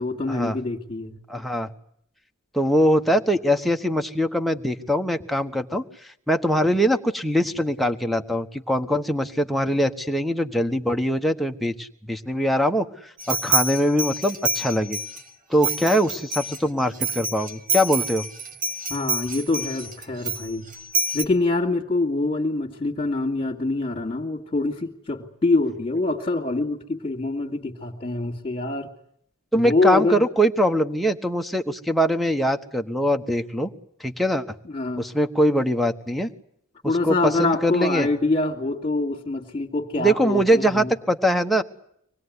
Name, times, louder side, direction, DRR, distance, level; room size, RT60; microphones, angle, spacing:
voice 1, 0.0-1.2 18.9-20.6 21.1-28.9 29.5-30.3 34.6-35.0 36.8-41.0, left 2 dB, 30° left, -3 dB, 2.3 m, -25 dB
voice 2, 1.3-1.7 2.5-5.8 6.3-12.9 13.3-15.0 15.5-18.2 29.5-33.7 34.0-34.4 35.0-36.3 37.0-38.1 40.0-41.6, equal, ahead, 4 dB, 1.2 m, -22 dB
sound 1, 13.2-15.2 15.6-21.2, right 3 dB, 35° right, 1.7 m, -27 dB
25.0 x 20.0 x 9.7 m, 0.71 s
head